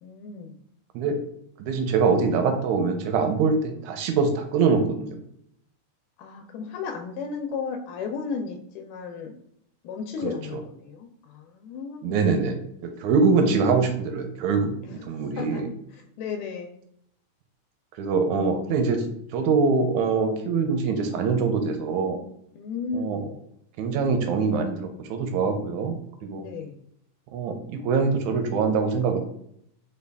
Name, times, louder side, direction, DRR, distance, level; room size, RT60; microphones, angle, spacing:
voice 1, 0.0-0.6 6.2-9.4 9.8-12.2 14.8-15.0 15.4-15.6 15.9-16.8 22.5-23.4 26.4-26.8, left 5 dB, 90° left, 3 dB, 2.1 m, -34 dB
voice 2, 1.6-5.2 10.2-10.3 12.0-15.7 18.0-19.0 19.3-22.2 22.9-23.2 23.8-26.0 26.2-26.5 27.3-29.2, right 4 dB, 80° right, 5 dB, 1.7 m, -24 dB
5.1 x 2.2 x 3.3 m, 0.71 s
omnidirectional pair, 3.6 m